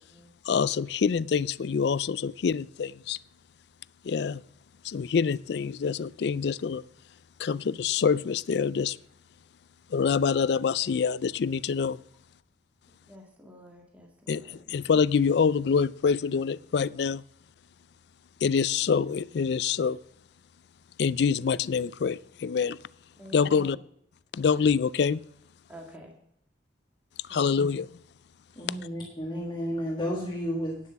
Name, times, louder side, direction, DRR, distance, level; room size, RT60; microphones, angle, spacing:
voice 1, 0.5-3.2 4.0-4.4 4.8-6.8 7.4-9.0 9.9-12.0 14.3-14.4 14.7-17.2 18.4-20.0 21.0-22.8 23.3-23.8 24.3-25.2 27.3-27.9, left 6 dB, 65° left, 0.4 m, -26 dB
voice 2, 13.1-14.7 23.2-23.8 25.7-26.2 27.3-27.7, equal, 10° right, 2.1 m, -49 dB
voice 3, 28.5-30.8, equal, 25° left, 1.7 m, -32 dB
9.5 x 8.0 x 7.0 m
head